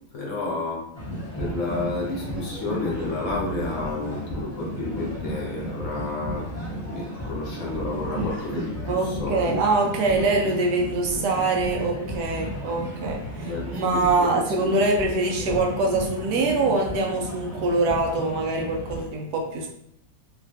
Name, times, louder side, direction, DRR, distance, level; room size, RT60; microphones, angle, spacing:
voice 1, 0.1-0.8 1.4-6.5 6.7-9.6 13.4-14.7, left 3 dB, 60° left, -3 dB, 1.0 m, -31 dB
sound 1, 0.9-19.1, equal, 15° left, 0.7 m, -33 dB
voice 2, 8.9-19.7, right 2 dB, 80° right, 1 dB, 1.2 m, -24 dB
3.2 x 2.2 x 2.6 m, 0.72 s
omnidirectional pair, 1.7 m